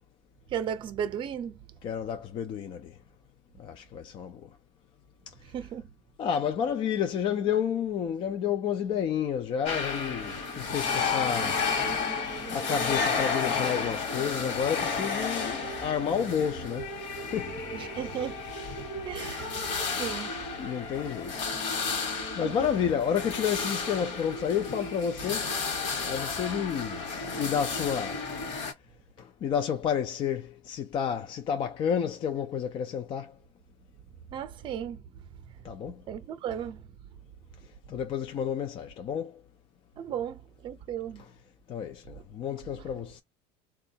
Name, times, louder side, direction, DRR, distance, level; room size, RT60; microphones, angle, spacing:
voice 1, 0.5-1.6 5.5-5.9 17.7-18.5 19.0-20.3 21.9-22.0 22.4-22.7 26.3-26.5 34.3-35.0 36.1-36.9 40.0-41.3, right 9 dB, 35° right, 0.6 m, -35 dB
voice 2, 1.8-3.0 3.6-4.5 5.3-5.4 5.6-5.7 6.2-11.7 12.5-17.6 19.5-20.1 20.6-21.6 22.4-25.6 26.0-27.0 27.4-28.2 29.2-33.4 35.6-36.0 37.9-39.4 41.2-41.3 41.7-43.2, left 8 dB, 35° left, 0.4 m, -31 dB
sound 1, 9.7-28.7, left 4 dB, 50° left, 1.2 m, -32 dB
3.6 x 2.3 x 2.7 m
cardioid pair, 150°, 15 cm